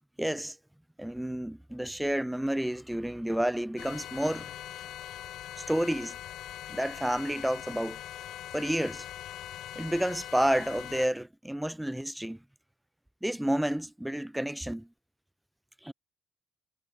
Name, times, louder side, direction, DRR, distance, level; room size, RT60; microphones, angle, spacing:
voice 1, 0.2-0.6 1.0-4.5 5.6-6.2 6.7-8.0 8.5-9.1 9.8-12.4 13.2-14.9 15.8-15.9, right 1 dB, 5° right, 0.3 m, -30 dB
sound 1, 3.8-11.1, left 12 dB, 65° left, 2.7 m, -42 dB
hypercardioid pair, 60°, 0 cm